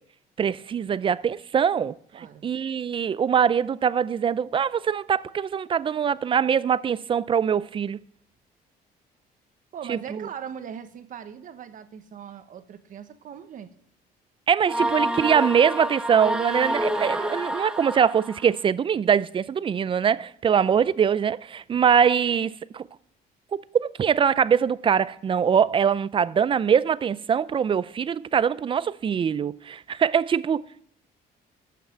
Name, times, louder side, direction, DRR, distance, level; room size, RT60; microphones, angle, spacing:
voice 1, 0.4-1.9 2.4-8.0 9.9-10.3 14.5-22.8 23.7-30.6, right 7 dB, 30° right, 0.4 m, -23 dB
voice 2, 2.1-2.5 9.7-13.7, right 8 dB, 50° right, 1.2 m, -39 dB
sound 1, 14.7-18.5, right 1 dB, 5° right, 0.9 m, -28 dB
14.0 x 5.9 x 7.4 m
cardioid pair, 110°, 17 cm